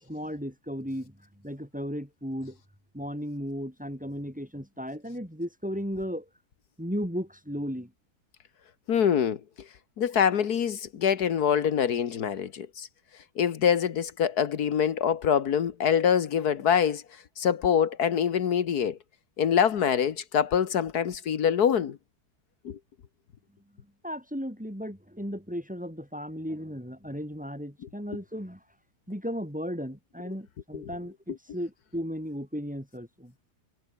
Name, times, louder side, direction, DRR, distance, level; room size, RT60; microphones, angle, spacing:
voice 1, 0.0-1.2 1.4-2.6 2.9-6.3 6.8-7.9 24.0-28.6 29.1-33.3, equal, 5° right, 3.3 m, -35 dB
voice 2, 8.9-9.4 10.0-12.9 13.4-17.0 17.4-19.0 19.4-22.0 22.7-22.8, left 8 dB, 75° left, 1.8 m, -25 dB
omnidirectional pair, 1.7 m